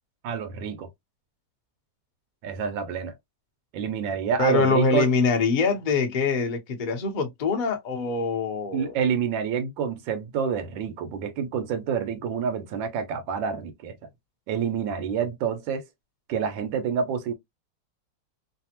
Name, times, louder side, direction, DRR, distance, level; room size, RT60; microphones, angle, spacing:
voice 1, 0.2-0.9 2.4-3.1 3.7-5.1 8.7-14.0 14.5-15.8 16.3-17.3, right 7 dB, 90° right, 1.4 m, -28 dB
voice 2, 4.4-9.0, left 4 dB, 60° left, 0.5 m, -24 dB
3.3 x 2.0 x 2.8 m
omnidirectional pair, 2.0 m